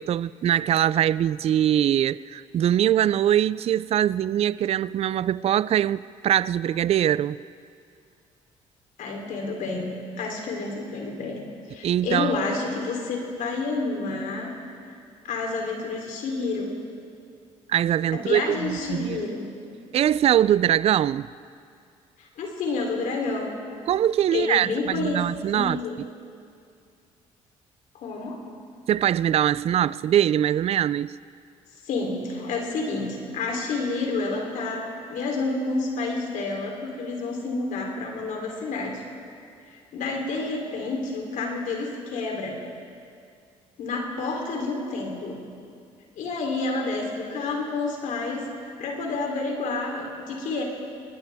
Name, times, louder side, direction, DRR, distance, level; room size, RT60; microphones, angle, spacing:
voice 1, 0.0-7.4 11.8-12.3 17.7-19.2 19.9-21.3 23.9-26.1 28.9-31.2, right 11 dB, 50° right, 0.4 m, -22 dB
voice 2, 9.0-11.4 11.7-14.5 14.9-15.0 15.2-16.8 18.1-19.5 22.2-23.5 24.3-25.3 25.5-26.0 27.9-28.5 31.8-39.0 39.7-42.6 43.8-45.4 46.2-48.5 48.8-50.6, left 3 dB, 75° left, 3.4 m, -29 dB
21.0 x 19.5 x 3.5 m
supercardioid pair, 70°, 14 cm